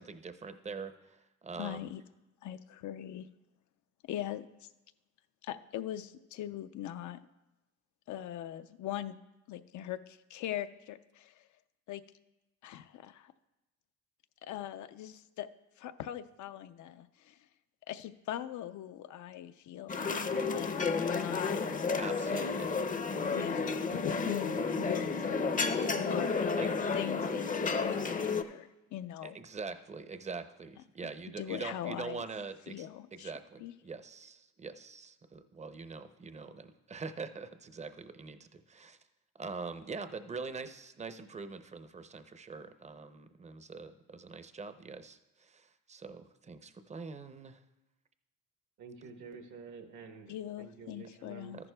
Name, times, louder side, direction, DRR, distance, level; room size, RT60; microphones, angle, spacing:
voice 1, 0.0-1.9 22.0-22.8 26.6-26.7 29.2-32.9 33.1-39.0 39.4-47.6 51.5-51.7, right 4 dB, 25° right, 11 dB, 0.6 m, -43 dB
voice 2, 1.5-2.0 2.4-3.3 4.0-4.7 5.4-7.2 8.1-9.2 9.5-11.4 11.9-12.0 12.6-13.3 14.4-15.5 15.8-17.4 17.9-21.6 22.3-22.5 23.2-25.4 25.9-29.4 31.4-32.2 32.7-33.3 33.6-33.7 50.3-51.7, left 12 dB, 70° left, 11 dB, 0.5 m, -41 dB
sound 1, 19.9-28.4, left 4 dB, 25° left, 0.6 m, -32 dB
voice 3, 48.8-51.5, right 4 dB, 80° right, 5 dB, 1.2 m, -49 dB
13.5 x 11.0 x 2.3 m, 1.0 s
cardioid pair, 90°, 30 cm